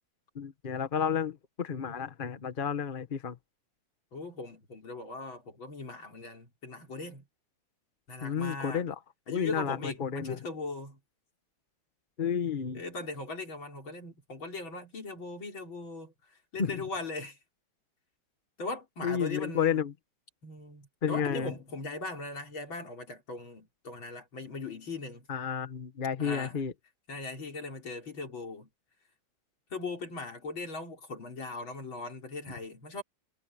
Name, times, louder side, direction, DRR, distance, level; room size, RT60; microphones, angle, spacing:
voice 1, 0.3-3.4 8.2-9.0 9.3-10.4 12.2-12.8 16.6-16.8 19.0-19.9 21.0-21.5 25.3-26.7, left 7 dB, 35° left, 0.9 m, -31 dB
voice 2, 4.1-7.2 8.1-8.9 9.3-11.0 12.7-17.4 18.6-19.8 20.4-25.3 26.2-26.6 27.1-28.7 29.7-33.0, left 3 dB, 65° left, 5.2 m, -39 dB
omnidirectional pair, 2.3 m